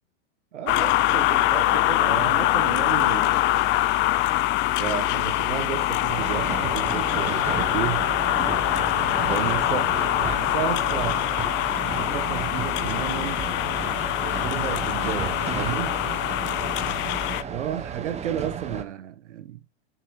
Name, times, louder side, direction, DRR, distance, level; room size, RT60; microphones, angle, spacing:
voice 1, 0.5-3.4 4.8-8.1 9.2-11.3 12.0-13.5 14.4-16.0 17.5-19.6, right 10 dB, 80° right, 1.1 m, -32 dB
sound 1, 0.7-17.4, left 15 dB, 30° left, 0.7 m, -24 dB
sound 2, 6.1-18.8, right 7 dB, 20° right, 1.4 m, -33 dB
11.0 x 6.1 x 3.1 m
hypercardioid pair, 125°, 35 cm